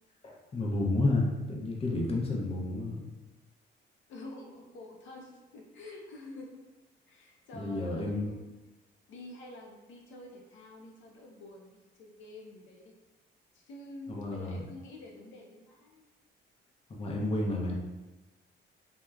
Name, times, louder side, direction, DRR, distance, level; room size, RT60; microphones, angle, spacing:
voice 1, 0.2-3.0 7.5-8.4 14.1-14.6 16.9-17.7, left 2 dB, 30° left, -1 dB, 0.5 m, -31 dB
voice 2, 4.1-6.6 7.1-8.5 9.1-12.9 13.5-16.1, left 2 dB, 75° left, 0 dB, 0.5 m, -48 dB
3.3 x 2.1 x 2.3 m, 1.1 s
cardioid pair, 90°, 20 cm